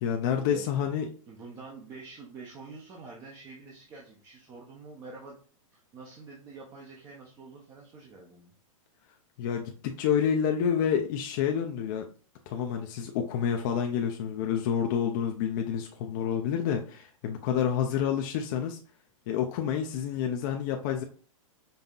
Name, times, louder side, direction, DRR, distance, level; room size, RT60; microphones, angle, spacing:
voice 1, 0.0-1.1 9.4-12.1 12.5-18.8 19.3-21.0, left 8 dB, 35° left, 3 dB, 0.4 m, -28 dB
voice 2, 1.3-5.4 5.7-8.5, right 4 dB, 20° right, -1 dB, 0.5 m, -46 dB
5.3 x 2.7 x 2.3 m, 0.40 s
supercardioid pair, 160°, 18 cm